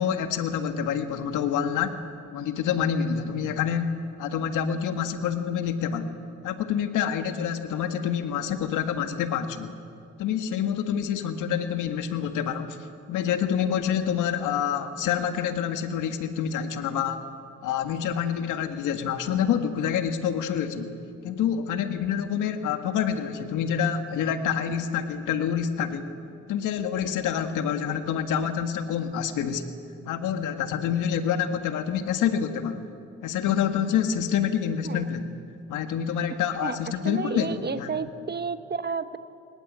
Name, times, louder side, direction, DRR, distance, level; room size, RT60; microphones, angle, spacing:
voice 1, 0.0-2.0 2.3-3.9 4.2-6.1 6.4-9.7 10.2-12.8 13.1-17.2 17.6-20.9 21.2-26.1 26.5-29.7 30.1-32.9 33.2-35.3 35.7-37.5 37.8-37.9, left 8 dB, 85° left, 7 dB, 1.9 m, -27 dB
voice 2, 37.0-39.2, right 5 dB, 35° right, 11 dB, 1.2 m, -31 dB
24.0 x 20.5 x 8.7 m, 2.5 s
cardioid pair, 90°, 30 cm